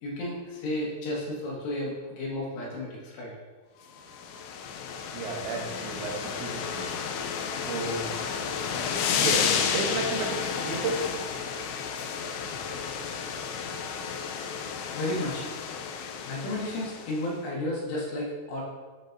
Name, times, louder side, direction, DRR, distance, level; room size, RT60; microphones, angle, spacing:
voice 1, 0.0-3.3 14.9-15.5 16.2-18.6, left 1 dB, 75° left, -4 dB, 3.4 m, -32 dB
sound 1, 4.0-17.3, left 7 dB, 90° left, 3.0 m, -32 dB
voice 2, 5.1-6.9 7.6-8.1 9.1-11.0, right 4 dB, 80° right, 0 dB, 3.1 m, -33 dB
8.8 x 5.1 x 2.7 m, 1.4 s
omnidirectional pair, 5.2 m